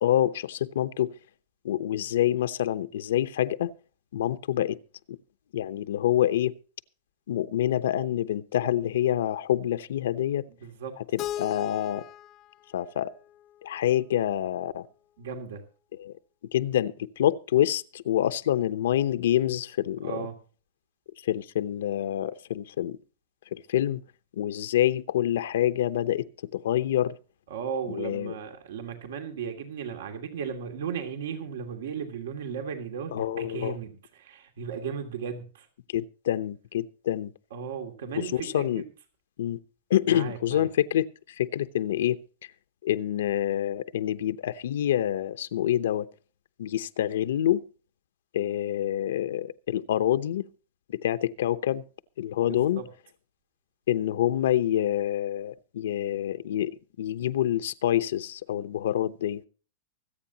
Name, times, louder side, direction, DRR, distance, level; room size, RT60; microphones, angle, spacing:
voice 1, 0.0-1.1 1.6-3.7 4.1-4.8 5.1-5.2 5.5-6.5 7.3-10.5 11.1-12.0 12.7-13.1 13.6-14.9 16.0-16.1 16.5-20.3 21.2-23.0 23.5-24.0 24.4-26.3 26.5-27.1 27.9-28.3 33.1-33.8 35.9-37.3 38.2-38.8 39.4-39.6 39.9-42.2 42.8-46.1 46.6-47.6 48.3-50.4 50.9-51.8 52.2-52.8 53.9-59.4, left 11 dB, 85° left, 0.8 m, -27 dB
voice 2, 10.6-10.9 15.2-15.6 20.0-20.3 27.5-35.7 37.5-38.7 40.1-40.7 52.4-52.9, right 7 dB, 85° right, 2.6 m, -36 dB
Keyboard (musical), 11.2-14.1, left 12 dB, 30° left, 0.5 m, -39 dB
24.5 x 8.7 x 2.9 m
supercardioid pair, 160°, 0 cm